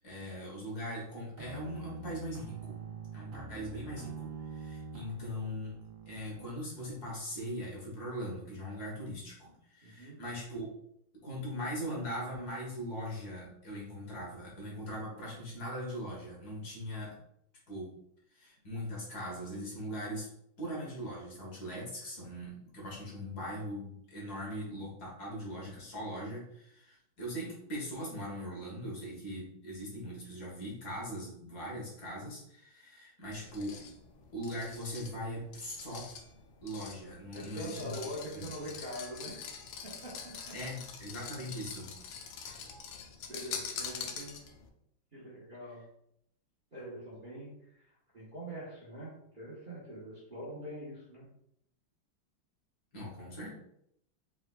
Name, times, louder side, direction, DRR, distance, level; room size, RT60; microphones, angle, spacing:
voice 1, 0.0-2.8 3.1-5.7 6.1-10.7 11.2-17.2 17.7-17.9 18.3-20.3 20.6-33.9 34.3-36.1 36.6-38.6 40.5-41.9 52.9-53.5, equal, 55° left, -4 dB, 1.7 m, -40 dB
sound 1, 1.4-6.5, right 5 dB, 75° right, 1.4 m, -45 dB
voice 2, 9.8-10.2 37.3-39.4 39.8-40.6 43.3-44.3 45.1-45.8 46.7-47.9 48.1-51.3, equal, 35° right, -7 dB, 0.9 m, -44 dB
sound 2, 33.3-44.7, left 6 dB, 80° left, 1.4 m, -45 dB
4.9 x 3.8 x 2.3 m, 0.74 s
omnidirectional pair, 2.2 m